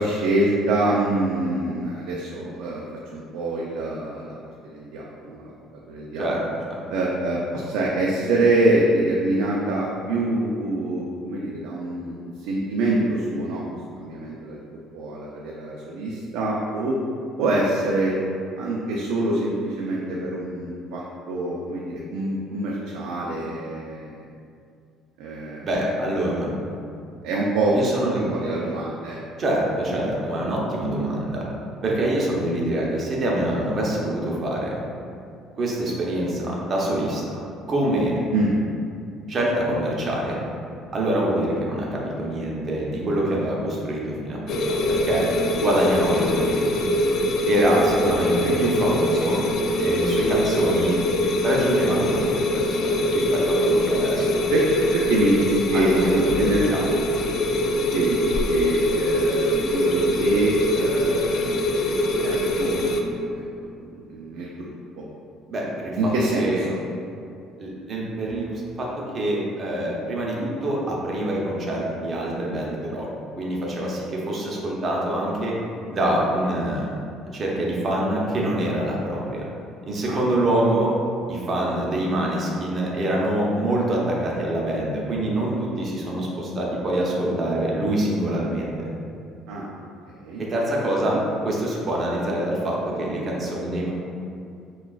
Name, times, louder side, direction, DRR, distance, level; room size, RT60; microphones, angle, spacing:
voice 1, 0.0-2.8 3.1-4.4 4.6-6.3 6.9-13.6 14.0-14.6 14.9-17.0 17.4-18.1 18.6-24.1 25.2-25.8 27.2-29.2 38.3-38.5 45.5-45.7 48.4-48.6 54.5-54.6 54.9-56.6 57.9-61.7 62.2-64.7 65.0-65.1 66.0-66.8 80.0-80.2 89.5-89.7 90.1-90.5 91.1-91.2, right 2 dB, 90° right, -4 dB, 0.4 m, -25 dB
voice 2, 6.2-6.8 25.6-26.5 27.7-28.3 29.4-31.4 31.8-34.8 35.5-37.4 37.7-38.2 38.4-38.5 39.3-40.4 40.9-45.2 45.6-46.9 47.5-49.4 49.8-51.0 51.4-54.7 55.7-56.9 65.5-66.1 66.4-66.6 67.6-68.5 68.8-68.9 69.1-73.1 73.4-75.6 75.9-76.9 77.3-79.4 79.9-80.9 81.3-88.9 90.4-91.2 91.4-93.9, right 1 dB, 30° right, -3 dB, 0.7 m, -25 dB
sound 1, 44.5-63.0, left 1 dB, 50° left, 0.3 m, -23 dB
5.9 x 2.3 x 2.3 m, 2.4 s
cardioid pair, 155°, 0 cm